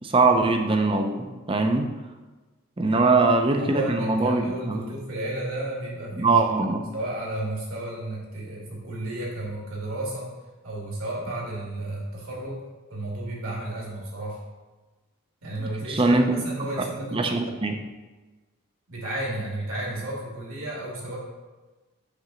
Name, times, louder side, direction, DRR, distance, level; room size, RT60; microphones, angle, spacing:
voice 1, 0.0-1.9 2.8-4.9 6.2-6.9 15.9-16.4 16.8-16.9 17.1-17.8, right 3 dB, 25° right, 5 dB, 0.5 m, -22 dB
voice 2, 3.6-6.7 6.9-10.3 10.6-12.6 12.9-14.4 15.4-17.6 18.9-21.2, right 1 dB, 70° right, -3 dB, 2.2 m, -33 dB
6.7 x 3.8 x 6.1 m, 1.2 s
head